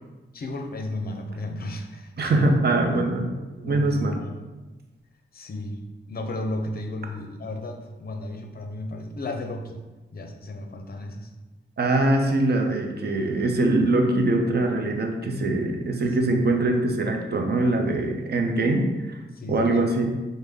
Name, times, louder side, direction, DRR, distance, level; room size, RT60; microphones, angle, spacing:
voice 1, 0.3-3.2 3.6-4.5 5.3-5.8 6.1-9.8 10.1-11.3 16.1-16.4 19.3-19.9, left 1 dB, 50° left, 4 dB, 0.6 m, -34 dB
voice 2, 2.2-3.3 3.6-4.2 11.8-19.1 19.5-20.1, right 2 dB, 55° right, 3 dB, 0.6 m, -23 dB
5.2 x 2.1 x 3.5 m, 1.2 s
cardioid pair, 75°, 21 cm